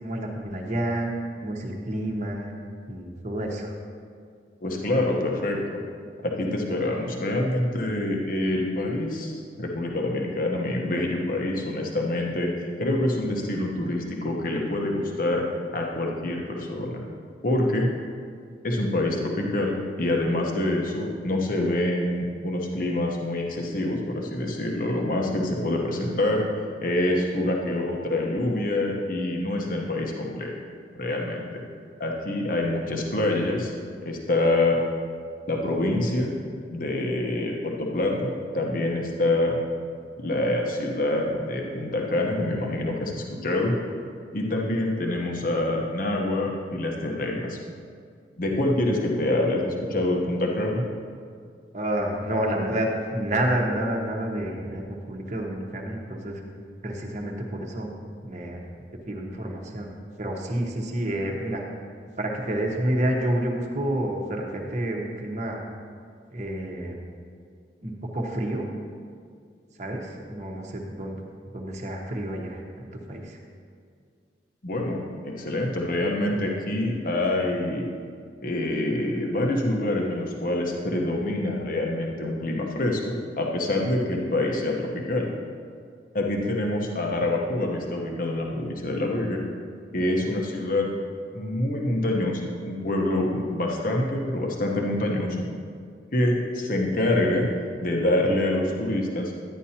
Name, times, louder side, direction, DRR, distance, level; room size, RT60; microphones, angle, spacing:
voice 1, 0.0-2.5 2.9-3.7 51.7-56.4 56.8-57.9 58.2-58.6 59.1-59.9 60.2-61.6 62.2-65.7 66.3-67.0 67.8-68.6 69.8-71.2 71.5-73.4, right 1 dB, 40° right, 0 dB, 1.0 m, -29 dB
voice 2, 4.6-5.8 6.2-12.5 12.8-15.5 15.7-17.0 17.4-17.9 18.6-26.4 26.8-30.5 30.9-31.6 32.0-33.7 34.0-34.8 35.5-36.3 36.7-39.6 40.2-43.7 44.3-47.6 48.4-50.8 74.6-77.9 78.4-85.3 86.1-89.4 89.9-90.9 91.3-95.4 96.1-97.5 97.8-99.3, left 1 dB, 50° left, 0 dB, 1.0 m, -26 dB
11.5 x 9.9 x 2.8 m, 2.2 s
head